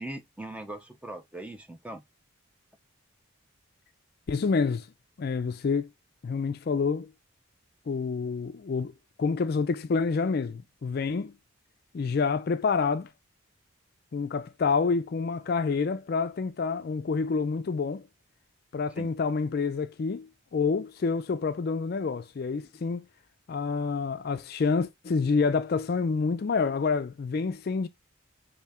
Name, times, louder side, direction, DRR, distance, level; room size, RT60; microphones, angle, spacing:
voice 1, 0.0-2.0 19.0-19.1, right 1 dB, 5° right, 0.5 m, -40 dB
voice 2, 4.3-4.9 5.2-5.9 6.2-7.1 7.9-8.9 9.2-11.4 11.9-13.1 14.1-18.0 18.7-23.1 23.5-27.9, left 4 dB, 45° left, 0.3 m, -28 dB
5.5 x 2.7 x 3.4 m
head